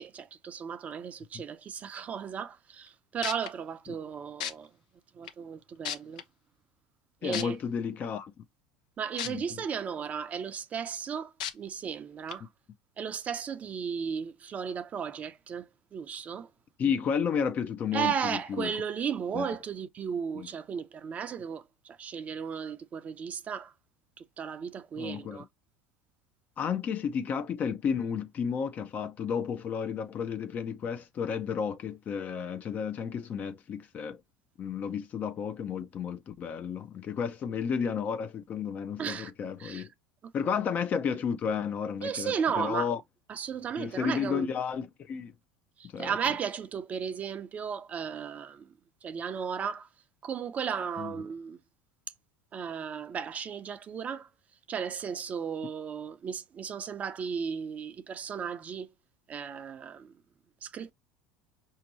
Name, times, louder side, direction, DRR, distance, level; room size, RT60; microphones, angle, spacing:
voice 1, 0.0-4.7 5.1-6.2 7.2-7.6 9.0-12.5 13.0-16.5 17.9-23.7 24.2-25.5 37.2-37.3 39.0-39.3 39.6-39.9 40.2-40.6 42.0-42.9 43.3-44.5 45.8-48.7 49.0-49.9 50.2-51.6 52.5-54.3 54.7-58.9 59.3-60.1 60.6-60.9, right 7 dB, 35° right, 0.6 m, -35 dB
sound 1, 2.9-3.0 3.2-3.5 4.4-4.5 5.3-5.4 5.8-6.2 7.3-7.4 9.2-9.3 9.8-9.9 11.4-11.5 12.3-12.4, left 10 dB, 80° left, 0.6 m, -33 dB
voice 2, 7.2-8.3 9.3-9.6 16.8-18.7 19.3-19.5 20.3-20.5 25.0-25.4 26.6-34.2 34.6-39.9 40.3-43.0 43.8-45.3 45.8-46.1 51.0-51.2, left 7 dB, 40° left, 0.6 m, -32 dB
5.1 x 2.8 x 2.8 m
hypercardioid pair, 85°, 4 cm